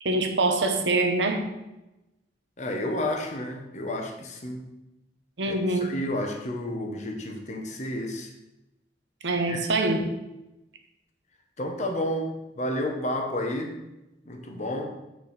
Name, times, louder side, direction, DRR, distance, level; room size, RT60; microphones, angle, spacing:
voice 1, 0.0-1.5 5.4-5.9 9.2-10.1, right 2 dB, 85° right, 5 dB, 0.9 m, -24 dB
voice 2, 2.6-4.7 5.4-8.3 9.5-9.6 11.6-13.8 14.2-14.9, left 1 dB, 40° left, 3 dB, 1.0 m, -31 dB
8.4 x 4.4 x 4.2 m, 0.96 s
head